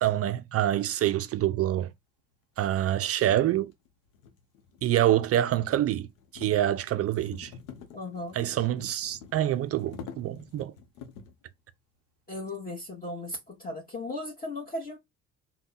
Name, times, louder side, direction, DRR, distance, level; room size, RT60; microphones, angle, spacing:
voice 1, 0.0-1.9 2.6-3.7 4.8-6.1 6.3-7.5 8.4-10.7, right 12 dB, 40° right, 0.4 m, -26 dB
sound 1, 3.4-11.4, left 6 dB, 70° left, 0.9 m, -48 dB
voice 2, 7.9-8.4 12.3-15.0, left 2 dB, 20° left, 1.1 m, -36 dB
3.3 x 2.3 x 3.9 m
figure-of-eight pair, 50°, 40 cm